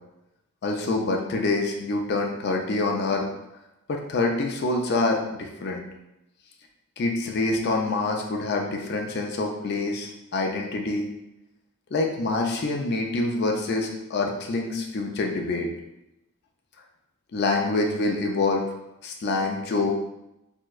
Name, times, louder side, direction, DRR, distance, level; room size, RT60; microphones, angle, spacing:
voice 1, 0.6-3.3 3.9-5.8 7.0-11.1 11.9-15.7 17.3-18.6 19.0-19.9, left 2 dB, 45° left, 1 dB, 0.4 m, -26 dB
4.3 x 2.2 x 2.3 m, 0.90 s
head